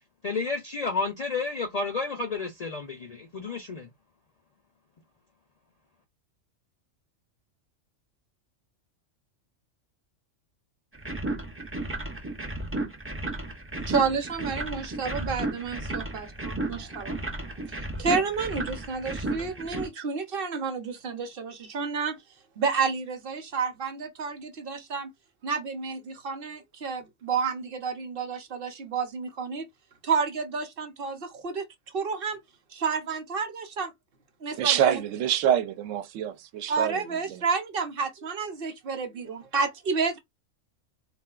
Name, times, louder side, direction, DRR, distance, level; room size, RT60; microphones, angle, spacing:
voice 1, 0.2-3.9, left 4 dB, 55° left, 0.4 m, -31 dB
sound 1, 10.9-19.9, right 2 dB, 20° right, 0.3 m, -33 dB
voice 2, 13.9-17.2 18.0-22.2 22.6-25.1 25.4-29.7 30.0-31.7 31.9-32.4 32.7-33.9 34.4-35.0 36.7-40.2, right 5 dB, 55° right, 0.8 m, -30 dB
voice 3, 34.6-37.4, right 10 dB, 85° right, 0.9 m, -26 dB
3.7 x 2.3 x 2.3 m
omnidirectional pair, 1.3 m